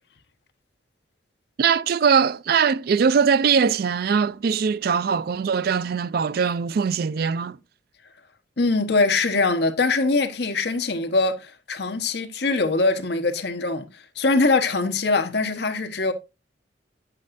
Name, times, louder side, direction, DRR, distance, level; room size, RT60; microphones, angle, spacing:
voice 1, 1.6-7.6, right 6 dB, 55° right, 0.3 m, -21 dB
voice 2, 8.6-16.1, left 3 dB, 60° left, 1.0 m, -22 dB
9.1 x 7.4 x 2.5 m
head